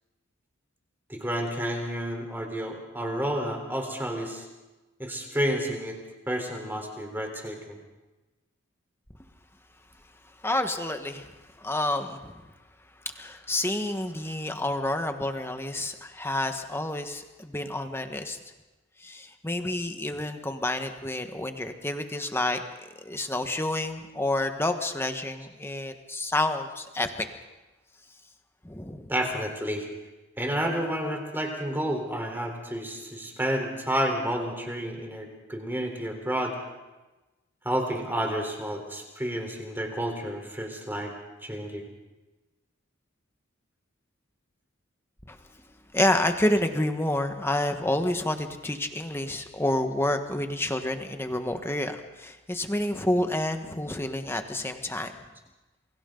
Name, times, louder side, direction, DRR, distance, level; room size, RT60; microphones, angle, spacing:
voice 1, 1.1-4.5 5.0-6.0 6.3-7.8 29.1-29.9 30.4-36.6 37.6-41.1 41.4-41.9, equal, 10° right, 2 dB, 3.8 m, -30 dB
voice 2, 10.4-11.3 11.6-12.3 13.1-18.4 19.0-22.6 23.0-27.1 28.6-29.1 45.3-45.4 45.9-55.1, left 1 dB, 10° left, 6 dB, 1.4 m, -29 dB
28.5 x 23.0 x 3.9 m, 1.1 s
head